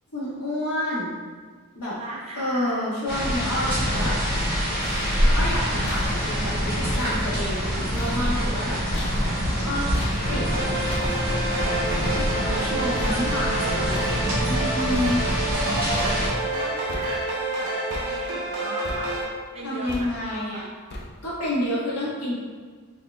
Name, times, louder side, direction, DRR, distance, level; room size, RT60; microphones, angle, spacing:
voice 1, 0.1-1.1 1.7-2.0 2.3-4.2 5.3-8.8 9.6-9.9 10.3-10.8 12.1-14.0 14.5-15.2 19.6-20.7 21.2-22.3, left 1 dB, 85° left, -8 dB, 1.4 m, -29 dB
voice 2, 2.0-2.9 15.6-19.1 19.5-20.6, right 1 dB, 25° right, -3 dB, 0.5 m, -37 dB
sound 1, 3.1-16.3, equal, 45° right, 0.9 m, -25 dB
sound 2, 4.5-15.7 15.9-16.6 16.9-17.5 17.9-18.6 18.8-19.4 19.9-20.4 20.9-21.4, left 1 dB, 45° left, 0.4 m, -38 dB
sound 3, 10.1-19.2, right 2 dB, 65° right, 0.9 m, -28 dB
3.7 x 3.7 x 2.2 m, 1.5 s
head